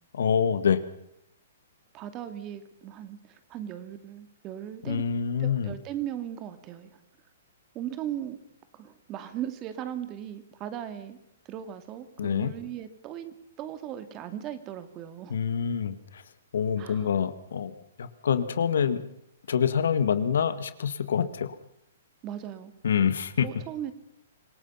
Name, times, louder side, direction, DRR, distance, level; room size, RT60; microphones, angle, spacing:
voice 1, 0.1-0.8 4.8-5.7 12.2-12.5 15.3-16.2 16.5-17.7 18.0-19.0 19.5-21.6 22.8-23.5, left 7 dB, 75° left, 12 dB, 1.9 m, -26 dB
voice 2, 1.9-5.0 5.4-6.9 7.7-8.4 8.7-11.2 11.5-15.4 16.8-17.1 22.2-22.7 23.4-23.9, right 11 dB, 30° right, 10 dB, 2.4 m, -38 dB
26.5 x 17.5 x 5.7 m, 0.77 s
hypercardioid pair, 145°, 0 cm